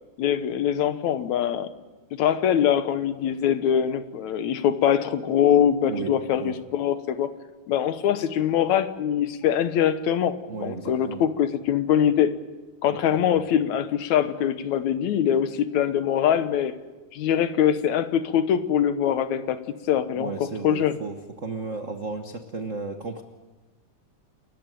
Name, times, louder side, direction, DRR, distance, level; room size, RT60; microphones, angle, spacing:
voice 1, 0.2-1.7 2.2-7.3 7.7-12.3 12.8-16.8 17.1-19.6 19.9-21.0, left 9 dB, 75° left, 11 dB, 2.2 m, -23 dB
voice 2, 10.5-11.3 13.0-13.5 20.1-23.2, right 4 dB, 85° right, 6 dB, 0.6 m, -34 dB
29.0 x 14.0 x 9.0 m, 1.2 s
omnidirectional pair, 3.5 m